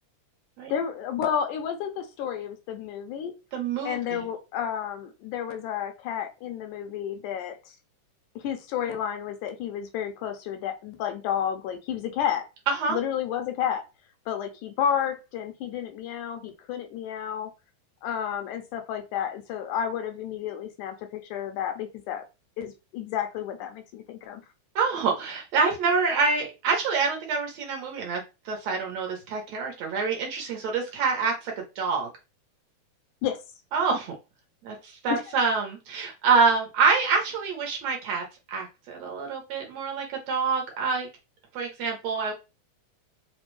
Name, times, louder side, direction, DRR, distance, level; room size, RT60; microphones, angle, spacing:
voice 1, 0.7-3.3 3.8-7.7 8.4-12.5 12.9-13.8 14.3-17.5 18.0-22.3 22.6-24.4 33.2-33.4 35.1-35.2, left 9 dB, 80° left, 6 dB, 2.0 m, -31 dB
voice 2, 3.5-4.2 12.7-13.0 24.8-32.1 33.7-34.2 34.6-41.1 41.5-42.3, right 5 dB, 70° right, 0 dB, 1.9 m, -26 dB
5.1 x 2.2 x 3.1 m, 0.27 s
omnidirectional pair, 3.7 m